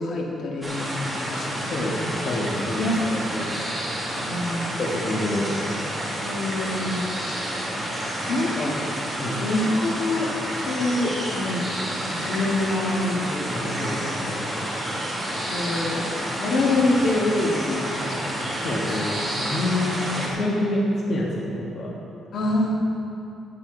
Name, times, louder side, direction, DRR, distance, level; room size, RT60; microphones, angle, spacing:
voice 1, 0.0-1.8 2.8-3.0 4.3-4.7 6.2-7.0 8.3-8.8 9.4-11.7 12.0-14.0 15.5-16.1 16.4-18.4 18.9-19.0 22.3-22.7, left 2 dB, 60° left, -2 dB, 2.0 m, -26 dB
sound 1, 0.6-20.3, equal, ahead, 2.4 m, -29 dB
voice 2, 1.7-3.5 4.8-5.6 9.2-9.4 13.5-14.4 18.6-21.9, left 1 dB, 40° left, -4 dB, 1.5 m, -27 dB
14.5 x 9.8 x 4.0 m, 2.8 s
cardioid pair, 145°, 0 cm